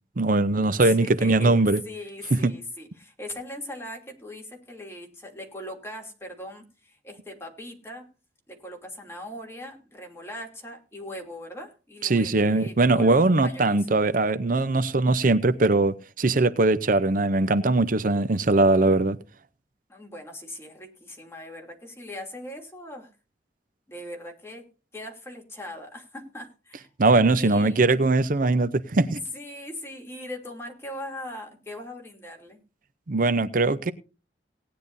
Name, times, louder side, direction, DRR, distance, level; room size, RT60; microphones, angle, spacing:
voice 1, 0.2-1.8 2.3-2.5 12.0-19.2 27.0-29.2 33.1-33.9, right 2 dB, 50° right, 0.7 m, -21 dB
voice 2, 0.8-8.0 8.5-13.9 19.9-23.1 23.9-24.7 24.9-26.9 27.3-27.8 29.3-32.6, left 1 dB, 15° left, 2.9 m, -40 dB
18.5 x 10.0 x 2.7 m
head